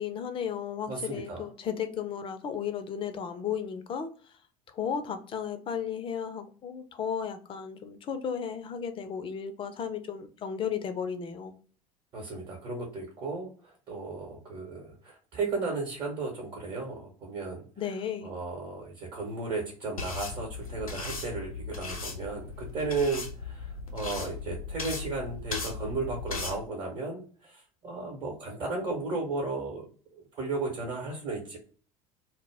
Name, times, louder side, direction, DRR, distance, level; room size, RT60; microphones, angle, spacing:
voice 1, 0.0-4.1 4.7-11.5 17.8-18.3, left 7 dB, 30° left, 0.4 m, -34 dB
voice 2, 0.9-1.5 12.1-17.9 18.2-29.8 30.1-31.6, right 3 dB, 45° right, 0.9 m, -35 dB
sound 1, 20.0-26.6, left 4 dB, 85° left, 0.5 m, -37 dB
2.1 x 2.1 x 3.3 m
figure-of-eight pair, 65°, 18 cm